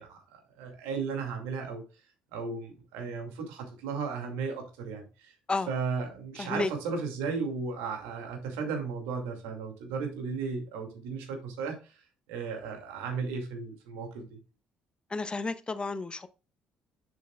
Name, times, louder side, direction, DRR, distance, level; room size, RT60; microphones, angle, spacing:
voice 1, 0.0-1.8 2.3-5.3 5.7-11.9 12.3-14.4, right 5 dB, 70° right, 2.2 m, -35 dB
voice 2, 6.4-6.7 15.1-16.3, left 3 dB, 25° left, 0.8 m, -31 dB
8.0 x 7.1 x 2.3 m
figure-of-eight pair, 50°, 4 cm